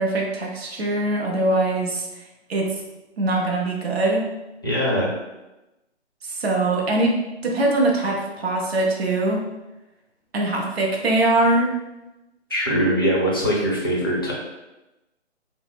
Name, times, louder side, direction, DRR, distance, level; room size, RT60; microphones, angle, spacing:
voice 1, 0.0-2.1 2.5-2.7 3.2-4.3 6.2-7.2 7.4-9.4 10.3-11.7, right 2 dB, 60° right, -1 dB, 0.8 m, -22 dB
voice 2, 4.6-5.1 12.5-14.3, equal, 20° left, -5 dB, 0.4 m, -22 dB
2.2 x 2.0 x 3.5 m, 0.99 s
figure-of-eight pair, 150°, 34 cm